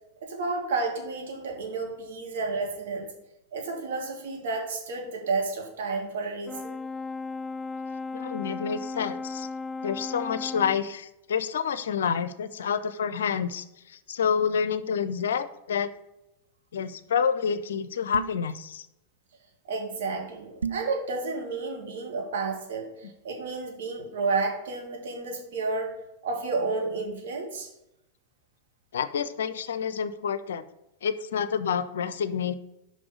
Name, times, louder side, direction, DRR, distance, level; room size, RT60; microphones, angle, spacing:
voice 1, 0.2-3.1 3.5-6.8 19.7-25.9 26.2-27.7, right 3 dB, 65° right, 1 dB, 2.0 m, -31 dB
Brass instrument, 6.5-10.9, left 3 dB, 5° left, 0.3 m, -35 dB
voice 2, 8.1-9.5 9.8-15.9 16.7-18.9 28.9-30.6 31.0-32.5, left 7 dB, 70° left, 13 dB, 0.5 m, -28 dB
sound 1, 18.1-18.5 20.6-20.9, right 6 dB, 85° right, 0.3 m, -32 dB
6.0 x 5.4 x 6.3 m, 0.88 s
figure-of-eight pair, 95°, 0 cm